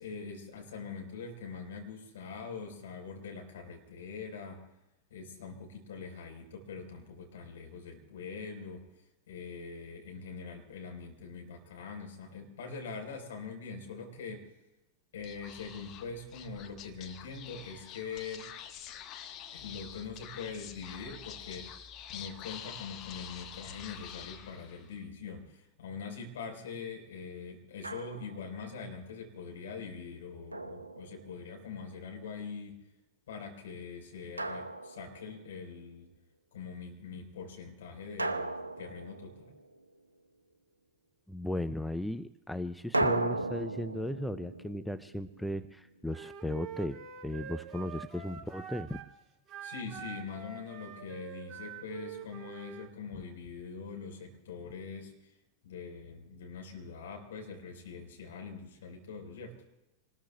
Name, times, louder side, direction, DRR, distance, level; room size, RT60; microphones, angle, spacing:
voice 1, 0.0-4.6 5.1-8.8 9.3-14.5 15.1-18.5 19.5-21.7 22.1-32.8 33.3-36.1 36.5-39.5 49.6-55.1 55.6-59.5, left 5 dB, 60° left, 2 dB, 4.3 m, -43 dB
Speech / Whispering, 15.2-25.0, left 9 dB, 35° left, 1.3 m, -47 dB
Drum, 27.8-28.5 30.5-31.6 34.4-35.5 38.2-39.8 42.9-45.9, right 2 dB, 80° right, 0.8 m, -36 dB
voice 2, 41.3-49.0, left 1 dB, 5° left, 12 dB, 0.5 m, -36 dB
Wind instrument woodwind instrument, 46.1-49.1 49.5-52.9, right 7 dB, 25° right, 2.2 m, -45 dB
27.0 x 20.5 x 2.3 m, 0.94 s
figure-of-eight pair, 90°, 0 cm